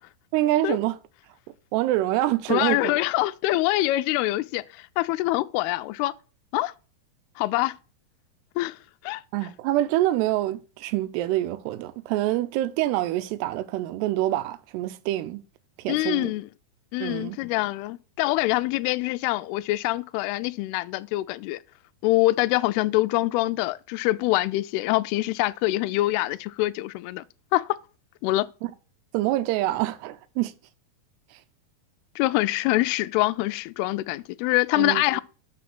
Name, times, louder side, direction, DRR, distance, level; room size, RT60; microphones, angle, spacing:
voice 1, 0.3-1.0 1.7-2.9 9.3-15.4 15.8-16.3 17.0-17.4 28.6-28.7 29.1-30.5 34.8-35.2, right 15 dB, 85° right, 2.7 m, -26 dB
voice 2, 2.5-6.1 6.5-6.7 7.4-7.7 8.6-8.8 9.0-9.2 15.9-16.5 16.9-21.6 22.0-27.2 27.5-27.7 28.2-28.5 32.2-35.2, left 18 dB, 85° left, 2.4 m, -25 dB
6.2 x 6.1 x 6.0 m
omnidirectional pair, 4.8 m